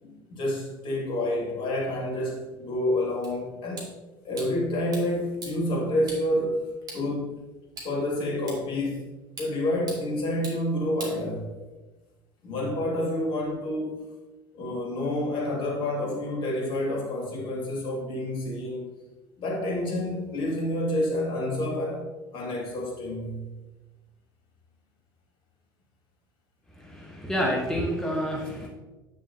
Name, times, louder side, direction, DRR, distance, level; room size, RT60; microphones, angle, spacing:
voice 1, 0.0-3.9 4.2-6.6 6.9-7.3 7.8-9.1 9.4-11.6 12.4-14.0 14.5-18.9 19.4-23.4, left 1 dB, 45° left, -2 dB, 2.2 m, -28 dB
sound 1, 3.2-11.8, right 2 dB, 35° right, 2.4 m, -46 dB
voice 2, 26.8-28.7, equal, 5° left, -2 dB, 1.2 m, -28 dB
8.8 x 6.4 x 2.8 m, 1.2 s
figure-of-eight pair, 70°, 12 cm